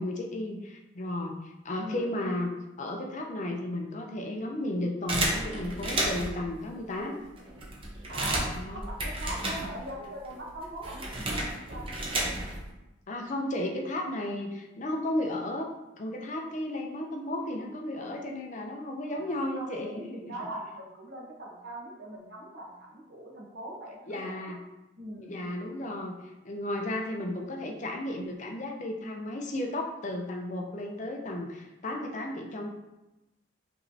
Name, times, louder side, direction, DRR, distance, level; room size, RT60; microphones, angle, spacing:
voice 1, 0.0-2.5 2.8-7.2 8.5-8.9 9.6-9.8 13.1-15.7 16.0-20.3 24.1-24.6 25.2-26.1 26.4-32.7, left 1 dB, 40° left, 2 dB, 0.5 m, -34 dB
voice 2, 1.8-2.1 8.1-11.9 19.0-24.6 25.0-25.4, right 1 dB, 60° right, -1 dB, 0.9 m, -41 dB
sound 1, 5.1-6.4 7.1-7.2 7.4-10.1 10.3-12.7, right 1 dB, 30° right, 0.7 m, -32 dB
5.4 x 3.1 x 2.7 m, 0.99 s
head